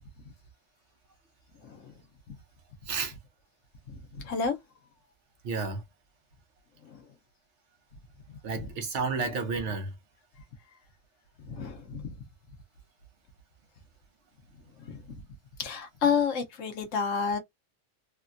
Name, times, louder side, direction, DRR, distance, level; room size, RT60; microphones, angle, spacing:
voice 1, 1.6-1.9 2.3-2.4 3.9-4.6 6.8-7.1 8.3-8.7 11.4-12.2 14.8-15.2 15.6-17.4, left 6 dB, 80° left, 1.1 m, -31 dB
voice 2, 2.9-3.2 5.4-5.8 8.4-9.9, right 4 dB, 70° right, 1.1 m, -31 dB
3.3 x 2.2 x 2.5 m
omnidirectional pair, 1.3 m